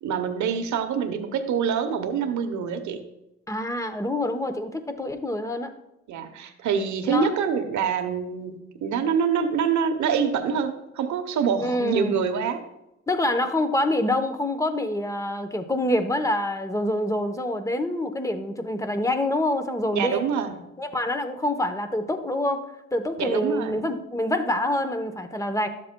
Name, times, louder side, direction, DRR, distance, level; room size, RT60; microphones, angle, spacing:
voice 1, 0.0-3.0 6.1-12.6 19.9-20.6 23.2-23.8, right 6 dB, 70° right, 7 dB, 1.0 m, -25 dB
voice 2, 3.5-5.7 7.1-7.3 11.6-12.2 13.1-20.2 20.8-22.6 22.9-25.7, left 1 dB, 10° left, 8 dB, 0.9 m, -26 dB
12.0 x 7.6 x 2.3 m, 0.94 s
cardioid pair, 90°, 30 cm